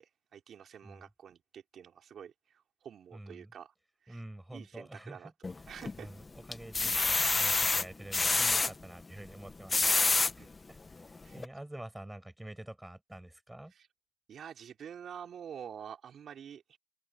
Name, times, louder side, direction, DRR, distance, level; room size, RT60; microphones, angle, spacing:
voice 1, 0.0-3.7 4.0-4.2 4.5-5.3 5.7-6.1 8.2-8.7 10.1-10.6 11.2-11.4 13.7-13.9 14.3-16.8, right 8 dB, 60° right, 4.8 m, -48 dB
voice 2, 3.1-3.5 4.1-5.3 6.0-10.0 10.4-10.8 11.3-13.7, right 1 dB, 10° right, 6.6 m, -47 dB
sound 1, 5.4-6.0 6.5-8.7 9.5-10.3 10.9-11.0 11.4-11.5, left 3 dB, 25° left, 1.4 m, -27 dB
open air
cardioid pair, 90°, 0 cm